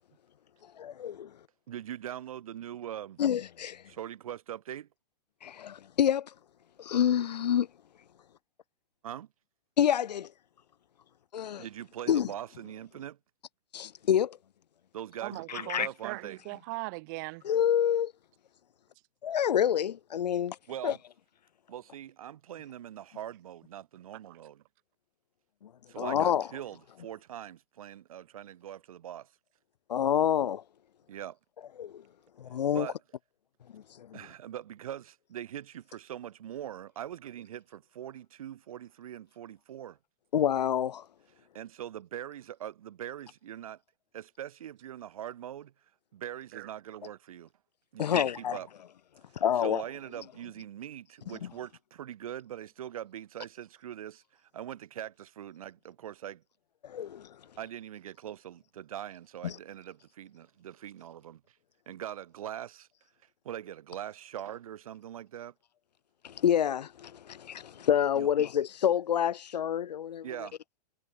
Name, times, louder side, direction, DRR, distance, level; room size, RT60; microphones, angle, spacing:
voice 1, 0.8-1.3 3.2-3.8 5.4-6.3 6.8-7.7 9.8-10.3 11.3-11.6 12.1-12.3 13.7-14.4 15.5-15.9 17.4-18.1 19.2-20.5 20.8-21.0 26.0-26.5 29.9-30.6 31.8-32.0 32.4-32.9 33.7-34.2 40.3-41.0 48.0-48.6 49.4-49.8 56.8-57.3 59.4-59.5 66.2-70.2, left 9 dB, 75° left, 2.8 m, -27 dB
voice 2, 1.7-3.2 3.9-4.9 9.0-9.3 11.6-13.2 14.9-16.4 20.7-21.0 21.7-24.6 25.9-29.3 31.1-31.4 32.7-33.0 34.1-40.0 41.5-43.8 44.1-45.7 46.1-47.5 47.9-48.7 49.6-56.4 57.6-61.6 61.9-62.9 63.4-65.5 68.2-68.3 70.2-70.6, right 11 dB, 55° right, 4.3 m, -42 dB
voice 3, 15.2-17.4 24.3-24.4 46.5-46.7, right 28 dB, 30° right, 5.1 m, -39 dB
hypercardioid pair, 180°, 21 cm